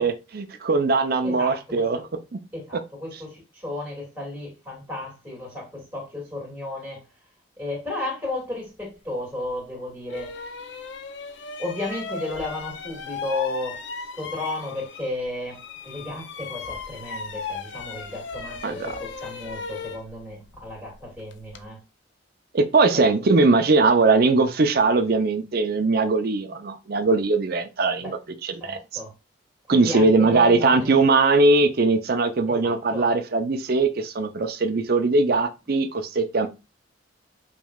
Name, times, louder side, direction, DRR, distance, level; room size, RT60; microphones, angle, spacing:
voice 1, 0.0-2.0 18.6-18.8 22.5-28.2 28.4-28.8 29.7-36.5, right 3 dB, 50° right, 0.5 m, -20 dB
voice 2, 1.2-2.1 2.5-7.0 7.6-10.5 11.6-13.8 14.2-15.6 15.8-21.8 22.9-23.4 28.0-28.1 28.6-29.1 29.7-31.0 32.5-33.1, left 2 dB, 10° right, 2.2 m, -33 dB
sound 1, 9.4-9.6 10.1-15.2 15.5-21.7, left 5 dB, 70° left, 0.5 m, -36 dB
5.2 x 3.1 x 2.3 m
head